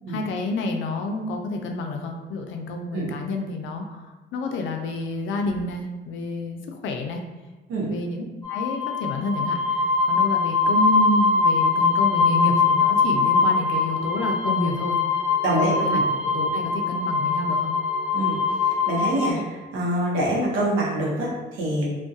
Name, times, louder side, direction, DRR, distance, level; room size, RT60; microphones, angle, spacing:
voice 1, 0.1-7.2 7.8-15.0 15.5-16.0 16.3-17.8, left 2 dB, 75° left, 3 dB, 0.4 m, -29 dB
sound 1, 8.4-19.3, left 4 dB, 25° left, 0.7 m, -22 dB
voice 2, 15.4-16.0 18.1-18.4 18.9-21.9, right 1 dB, 90° right, -3 dB, 0.7 m, -25 dB
2.3 x 2.2 x 2.6 m, 1.2 s
cardioid pair, 90°, 20 cm